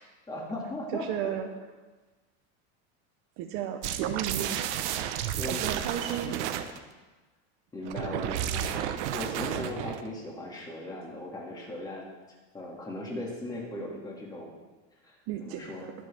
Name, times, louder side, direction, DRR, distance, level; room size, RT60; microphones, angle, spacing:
voice 1, 0.3-1.4 5.4-5.6 7.7-12.0 12.5-14.5 15.0-15.9, left 1 dB, 10° left, -2 dB, 2.0 m, -38 dB
voice 2, 0.9-1.5 3.4-4.8 5.5-6.5 15.3-15.9, right 10 dB, 40° right, 6 dB, 0.7 m, -34 dB
sound 1, 3.8-6.8 7.8-10.1, right 10 dB, 80° right, 1.0 m, -32 dB
22.5 x 7.7 x 3.4 m, 1.3 s
supercardioid pair, 170°, 34 cm